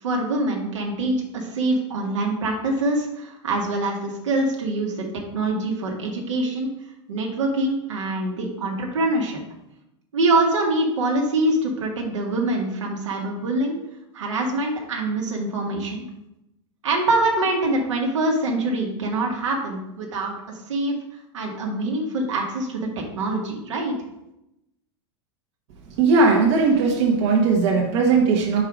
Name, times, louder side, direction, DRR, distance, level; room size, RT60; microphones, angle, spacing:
voice 1, 0.0-5.1 5.3-6.7 7.1-9.4 10.1-13.7 14.1-16.0 16.8-21.0 21.3-24.0, right 2 dB, 90° right, 0 dB, 1.4 m, -24 dB
voice 2, 26.0-28.6, right 4 dB, 65° right, 0 dB, 1.1 m, -18 dB
4.7 x 4.7 x 5.0 m, 0.88 s
hypercardioid pair, 115°, 15 cm